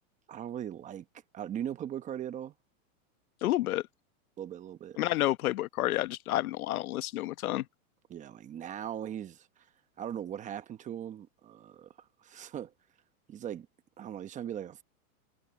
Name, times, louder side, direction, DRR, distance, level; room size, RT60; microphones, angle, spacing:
voice 1, 0.3-1.0 1.3-2.5 4.4-5.0 8.1-9.7 10.0-11.9 12.2-12.7 13.3-13.7 14.0-14.8, right 10 dB, 15° right, 0.9 m, -39 dB
voice 2, 3.4-3.8 5.0-7.6, left 15 dB, 75° left, 1.0 m, -30 dB
supercardioid pair, 155°, 44 cm